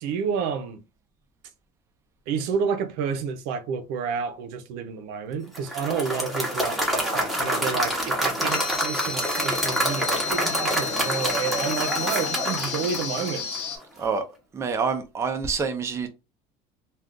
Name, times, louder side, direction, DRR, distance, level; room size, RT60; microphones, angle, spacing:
voice 1, 0.0-0.8 2.3-13.6, right 6 dB, 75° right, 0.6 m, -30 dB
Applause / Crowd, 5.6-13.7, equal, ahead, 0.8 m, -27 dB
sound 1, 8.5-13.8, left 6 dB, 70° left, 1.1 m, -32 dB
voice 2, 14.5-16.1, right 5 dB, 15° right, 0.4 m, -27 dB
2.4 x 2.4 x 3.6 m
cardioid pair, 140°, 16 cm